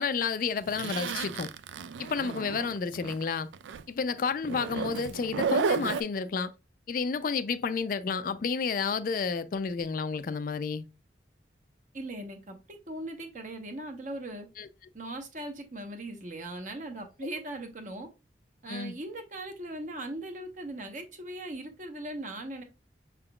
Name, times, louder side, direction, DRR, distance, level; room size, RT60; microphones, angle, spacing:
voice 1, 0.0-1.5 2.0-3.5 3.9-6.5 6.9-10.9 14.6-14.7 18.7-18.9, left 5 dB, 50° left, 0.3 m, -31 dB
Zipper (clothing), 0.7-3.2 3.5-3.8 4.4-6.0, right 6 dB, 80° right, 0.3 m, -32 dB
voice 2, 11.9-14.5 14.9-18.1 18.6-22.6, right 1 dB, 45° right, 0.9 m, -39 dB
5.9 x 3.6 x 2.2 m
head